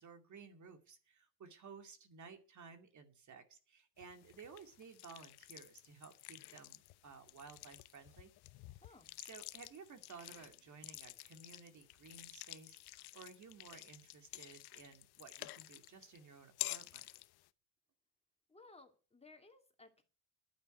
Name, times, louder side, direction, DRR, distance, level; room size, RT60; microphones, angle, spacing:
voice 1, 0.0-8.3 9.2-17.1, right 5 dB, 40° right, 7 dB, 2.4 m, -56 dB
sound 1, 4.0-17.5, left 18 dB, 55° left, 0.9 m, -51 dB
voice 2, 18.5-20.0, left 3 dB, 15° left, 5 dB, 2.5 m, -60 dB
11.5 x 9.1 x 9.2 m, 0.37 s
supercardioid pair, 110°, 46 cm